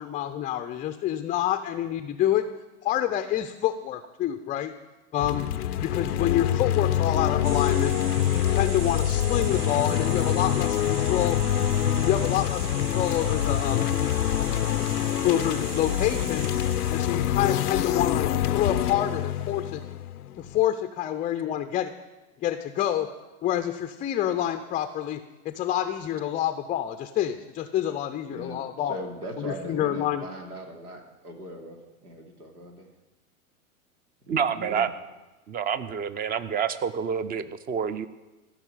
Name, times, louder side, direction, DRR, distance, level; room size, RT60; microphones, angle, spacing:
voice 1, 0.0-2.5 2.8-4.7 5.1-5.5 5.8-8.0 8.3-11.4 12.0-13.9 15.2-16.5 16.9-19.8 20.4-21.9 22.4-23.1 23.4-28.9 29.4-30.2, left 11 dB, 20° left, 8 dB, 0.5 m, -27 dB
sound 1, 5.2-20.6, left 11 dB, 90° left, 0.6 m, -26 dB
sound 2, 7.4-17.4, right 6 dB, 40° right, 1.1 m, -40 dB
voice 2, 28.3-32.9 34.3-34.9, right 1 dB, 90° right, 3 dB, 2.9 m, -40 dB
voice 3, 34.3-34.9 35.5-38.1, right 7 dB, 20° right, 14 dB, 0.7 m, -28 dB
15.0 x 6.1 x 10.0 m, 1.1 s
hypercardioid pair, 105°, 44 cm